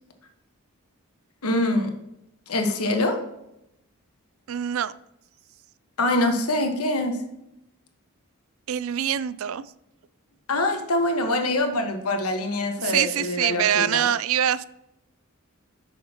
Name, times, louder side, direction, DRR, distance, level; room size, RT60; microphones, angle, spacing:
voice 1, 1.4-1.9 2.5-3.2 6.0-7.2 10.5-14.0, left 2 dB, 80° left, 5 dB, 1.3 m, -24 dB
voice 2, 4.5-4.9 8.7-9.6 12.8-14.6, right 9 dB, 65° right, 17 dB, 0.4 m, -24 dB
8.9 x 6.5 x 2.9 m, 0.84 s
head